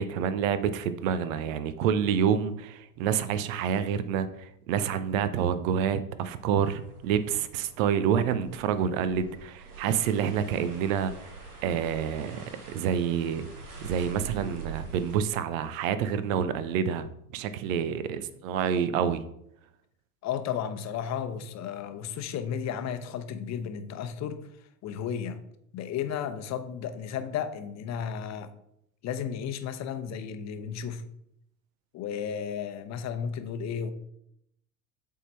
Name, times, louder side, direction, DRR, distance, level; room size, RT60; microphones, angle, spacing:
voice 1, 0.0-11.3 11.6-13.5 13.8-19.2, right 8 dB, 65° right, 12 dB, 0.7 m, -28 dB
sound 1, 6.4-15.2, right 4 dB, 85° right, 1.2 m, -45 dB
voice 2, 20.2-24.5 24.8-25.4 25.7-28.5 29.0-31.0 31.9-33.9, left 8 dB, 40° left, 10 dB, 0.8 m, -33 dB
8.1 x 3.8 x 4.3 m, 0.75 s
hypercardioid pair, 75°, 44 cm